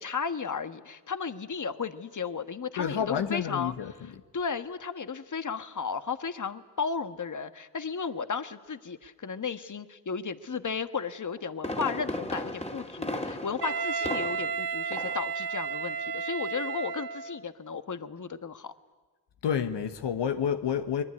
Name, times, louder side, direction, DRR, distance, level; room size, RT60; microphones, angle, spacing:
voice 1, 0.0-3.7 4.3-18.7, left 5 dB, 45° left, 1.4 m, -34 dB
voice 2, 2.8-4.1 19.4-21.0, left 8 dB, 90° left, 1.2 m, -29 dB
Fireworks, 11.2-14.6 14.9-15.3 15.6-15.7, left 1 dB, 15° left, 2.5 m, -36 dB
Wind instrument woodwind instrument, 13.6-17.4, right 6 dB, 70° right, 1.0 m, -33 dB
23.5 x 20.5 x 9.7 m
cardioid pair, 40°, 41 cm